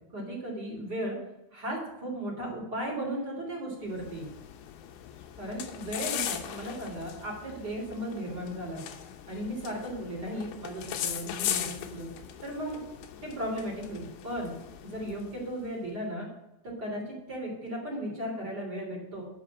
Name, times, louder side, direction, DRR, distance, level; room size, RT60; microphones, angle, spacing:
voice 1, 0.1-1.2 1.5-4.3 5.4-8.8 9.3-12.1 12.4-12.8 13.2-14.6 14.8-16.3 16.6-19.2, equal, 25° right, -3 dB, 3.4 m, -36 dB
sound 1, 3.9-15.6, left 10 dB, 80° left, 3.1 m, -39 dB
11.5 x 6.4 x 6.2 m, 0.91 s
omnidirectional pair, 5.3 m